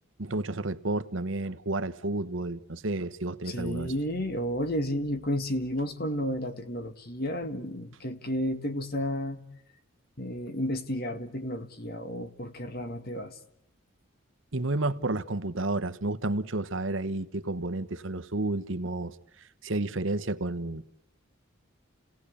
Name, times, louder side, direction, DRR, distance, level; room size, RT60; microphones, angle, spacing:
voice 1, 0.2-3.9 14.5-20.9, right 2 dB, 65° right, 1.2 m, -31 dB
voice 2, 3.5-9.4 10.2-13.3, equal, 45° left, 2.0 m, -32 dB
29.0 x 18.0 x 8.6 m
head